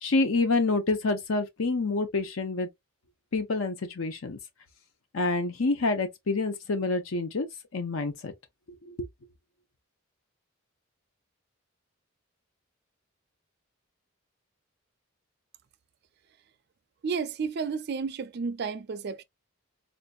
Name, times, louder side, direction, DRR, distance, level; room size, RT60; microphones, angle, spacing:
voice 1, 0.0-2.7 3.3-4.4 5.1-7.5 7.7-8.3 8.9-9.0, left 3 dB, 75° left, 0.7 m, -27 dB
voice 2, 17.0-19.2, right 5 dB, 50° right, 0.4 m, -32 dB
4.3 x 2.6 x 2.3 m
head